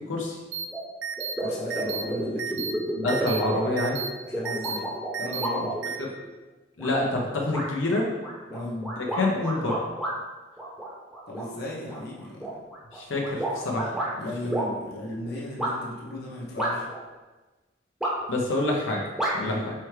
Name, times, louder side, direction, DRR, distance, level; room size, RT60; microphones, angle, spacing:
sound 1, 0.5-0.6 1.0-1.3 1.7-2.0 2.4-2.7 3.1-3.4 3.8-4.1 4.4-4.8 5.1-5.5 5.8-6.0, right 7 dB, 80° right, 0.5 m, -32 dB
sound 2, 0.7-0.8 1.2-6.3 6.8-7.3 7.5-7.7 8.2-10.1 10.6-11.5 11.9-14.1 14.5-14.7 15.6-15.7 16.6-17.0 18.0-18.4 19.2-19.3, right 1 dB, 5° right, 0.7 m, -31 dB
voice 1, 1.4-2.6 4.3-4.9 5.2-5.7 8.5-8.8 11.3-12.6 14.2-16.9 19.4-19.6, left 1 dB, 55° left, -4 dB, 0.8 m, -35 dB
voice 2, 3.0-4.0 6.8-8.1 8.6-9.8 12.9-14.3 18.3-19.0 19.3-19.7, left 2 dB, 85° left, -2 dB, 0.7 m, -27 dB
4.5 x 3.4 x 3.2 m, 1.2 s
head